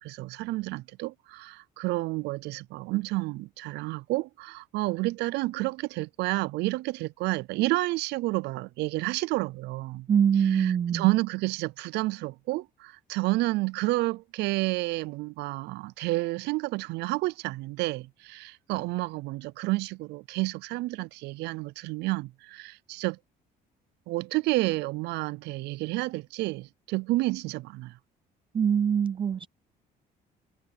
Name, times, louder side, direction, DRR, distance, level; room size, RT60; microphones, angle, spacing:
voice 1, 0.0-10.1 10.4-23.2 24.1-28.0, right 21 dB, 85° right, 0.5 m, -30 dB
voice 2, 10.1-11.1 28.5-29.5, right 8 dB, 30° right, 0.4 m, -23 dB
cardioid pair, 110°, 17 cm